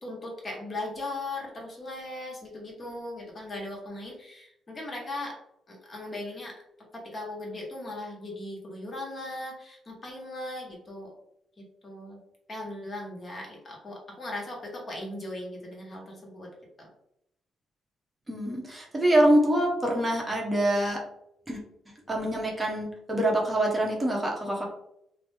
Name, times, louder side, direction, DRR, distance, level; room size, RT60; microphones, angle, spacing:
voice 1, 0.0-5.4 5.7-6.6 6.9-11.1 11.6-12.2 12.5-16.5 16.8-16.9, left 2 dB, 35° left, -1 dB, 1.1 m, -38 dB
voice 2, 18.3-21.0 21.5-21.6 22.1-24.7, right 1 dB, 20° right, -1 dB, 0.8 m, -25 dB
2.9 x 2.0 x 3.4 m, 0.77 s
cardioid pair, 90°, 0 cm